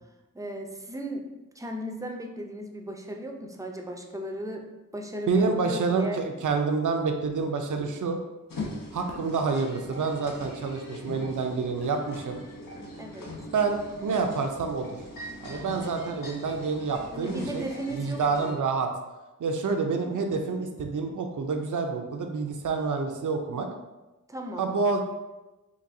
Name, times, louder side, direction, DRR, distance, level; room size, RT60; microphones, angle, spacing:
voice 1, 0.3-1.2 1.6-4.7 4.9-6.2 13.0-13.3 17.1-18.6 24.3-24.7, right 1 dB, 10° right, 2 dB, 0.4 m, -36 dB
voice 2, 5.3-8.2 8.9-12.4 13.5-14.9 15.4-18.9 19.4-23.7 24.6-25.0, right 4 dB, 65° right, 4 dB, 0.5 m, -28 dB
sound 1, 7.8-7.9 9.1-9.3 10.4-10.6 11.8-12.0, left 1 dB, 45° left, 0.7 m, -44 dB
sound 2, 8.5-18.5, left 1 dB, 80° left, 0.7 m, -41 dB
3.9 x 2.6 x 2.6 m, 1.1 s
wide cardioid pair, 60°, 33 cm